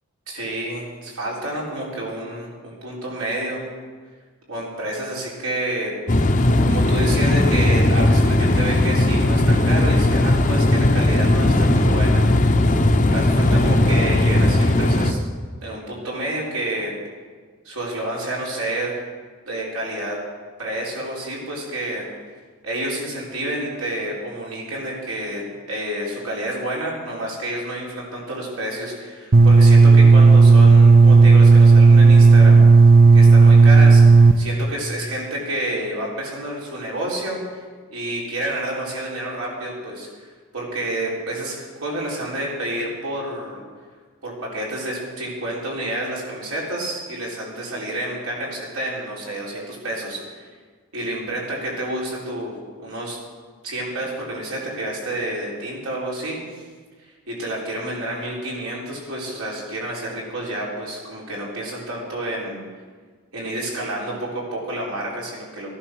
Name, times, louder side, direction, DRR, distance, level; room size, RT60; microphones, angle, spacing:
voice 1, 0.3-3.6 4.5-5.9 6.6-12.2 13.1-15.2 15.6-16.9 17.6-19.0 19.4-20.2 20.6-22.1 22.6-32.6 33.1-37.6 37.9-40.3 40.5-43.6 44.2-50.5 50.9-52.5 52.8-53.2 53.6-56.6 57.3-62.6 63.3-65.8, right 1 dB, 75° right, -4 dB, 4.5 m, -29 dB
sound 1, 6.1-15.1, left 1 dB, 35° left, 0.8 m, -17 dB
sound 2, 29.3-34.3, right 4 dB, 40° right, 0.5 m, -10 dB
15.0 x 11.0 x 6.3 m, 1.5 s
head